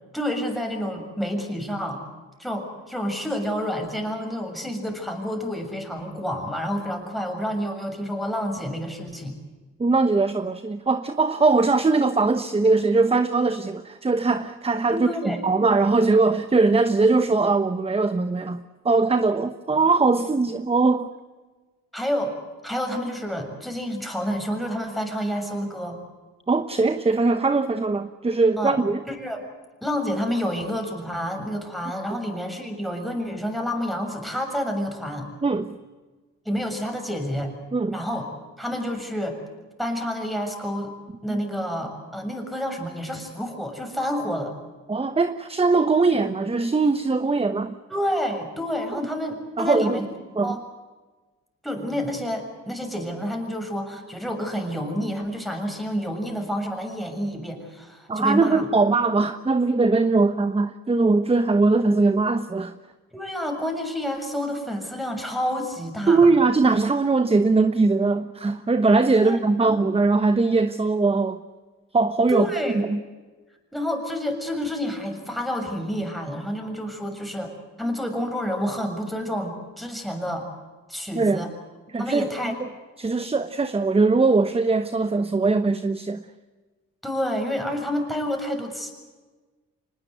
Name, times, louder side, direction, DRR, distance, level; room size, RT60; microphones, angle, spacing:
voice 1, 0.1-2.0 2.4-9.4 14.9-15.4 21.9-22.4 22.6-26.0 28.6-28.8 29.1-29.5 29.8-35.3 36.5-37.5 37.9-38.3 38.6-39.4 39.8-41.0 41.2-44.5 47.9-50.1 50.4-50.6 51.6-58.6 63.1-66.3 69.2-69.8 72.3-72.8 73.7-77.5 77.8-80.5 80.9-81.5 82.0-82.6 87.0-88.9, equal, ahead, 3 dB, 6.9 m, -29 dB
voice 2, 9.8-21.1 26.5-29.0 35.4-35.8 37.7-38.0 41.3-41.4 44.9-47.7 49.6-50.0 50.4-50.6 58.1-62.7 66.1-71.4 71.9-72.5 72.7-73.0 81.1-81.4 81.9-82.7 83.0-86.2, right 3 dB, 20° right, 11 dB, 1.1 m, -21 dB
26.0 x 20.5 x 8.1 m, 1.3 s
cardioid pair, 90°, 30 cm